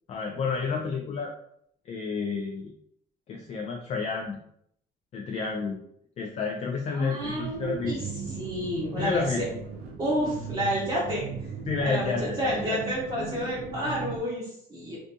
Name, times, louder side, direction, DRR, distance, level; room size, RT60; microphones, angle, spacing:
voice 1, 0.1-1.3 1.9-2.7 3.3-4.4 5.1-5.8 6.2-8.0 9.0-9.6 11.7-12.8, left 5 dB, 40° left, 1 dB, 0.4 m, -30 dB
voice 2, 6.9-8.0 8.4-9.4 10.0-11.3 11.8-15.0, equal, 25° right, -7 dB, 0.7 m, -30 dB
sound 1, 7.2-14.2, right 5 dB, 70° right, 0.5 m, -37 dB
2.5 x 2.3 x 2.6 m, 0.71 s
cardioid pair, 110°, 17 cm